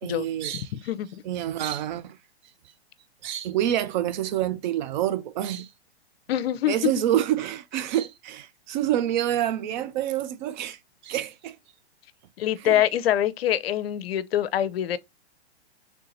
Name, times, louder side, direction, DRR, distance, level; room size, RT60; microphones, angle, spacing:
voice 1, 0.0-0.7 1.2-2.2 3.2-5.7 6.7-11.6 12.6-12.8, right 11 dB, 45° right, 0.5 m, -27 dB
voice 2, 6.3-6.9 12.4-15.0, left 11 dB, 60° left, 0.6 m, -24 dB
3.5 x 2.7 x 3.8 m
hypercardioid pair, 125°, 33 cm